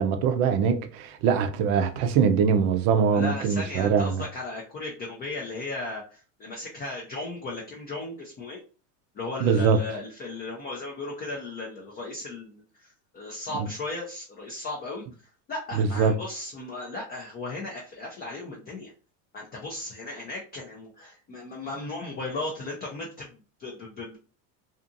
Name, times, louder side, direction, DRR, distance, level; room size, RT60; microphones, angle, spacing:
voice 1, 0.0-4.2 9.4-9.8 13.6-13.7 15.7-16.1, right 6 dB, 50° right, 0.5 m, -23 dB
voice 2, 3.1-8.6 9.1-15.0 15.5-18.9 19.3-24.2, left 2 dB, 20° left, 0.4 m, -36 dB
2.6 x 2.5 x 2.5 m
supercardioid pair, 120°, 50 cm